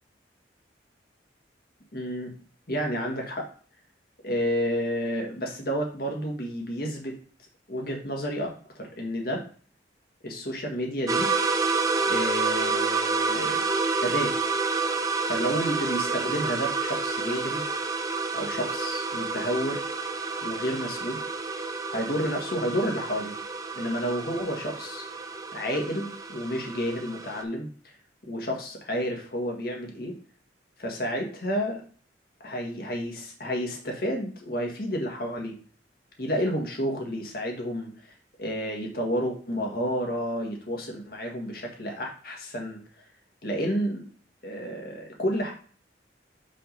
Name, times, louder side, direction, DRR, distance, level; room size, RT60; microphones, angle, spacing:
voice 1, 1.9-2.3 2.7-3.5 4.2-7.2 7.7-8.5 8.8-9.4 10.2-11.3 12.1-13.6 14.0-14.3 15.3-17.6 18.3-19.9 20.4-21.2 21.9-23.3 23.7-25.0 25.5-27.9 28.2-30.2 30.8-31.8 32.4-35.5 36.2-37.9 38.4-42.8 43.4-44.1 44.4-45.5, equal, 50° left, 1 dB, 1.6 m, -30 dB
sound 1, 11.1-27.4, right 4 dB, 20° right, 0.6 m, -29 dB
5.6 x 3.6 x 5.3 m, 0.43 s
head